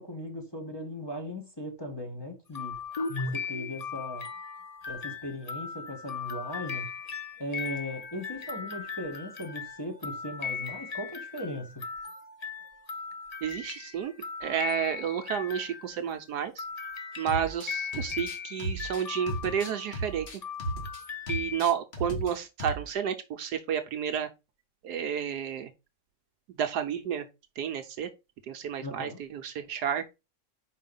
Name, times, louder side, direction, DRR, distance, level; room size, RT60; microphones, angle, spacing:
voice 1, 0.0-2.8 3.3-4.3 4.9-6.9 7.4-11.8 28.8-29.2, left 1 dB, 15° left, 1.5 m, -38 dB
sound 1, 2.5-16.1 16.6-21.6, left 5 dB, 80° left, 0.3 m, -38 dB
voice 2, 13.4-14.1 14.4-16.6 17.2-20.3 21.3-24.3 24.8-25.7 26.5-27.3 27.6-28.1 28.4-30.0, right 8 dB, 70° right, 1.2 m, -31 dB
sound 2, 17.3-17.7 17.9-21.0 21.3-22.3 22.6-22.9, right 1 dB, 40° left, 1.7 m, -35 dB
5.1 x 4.9 x 5.3 m
omnidirectional pair, 1.9 m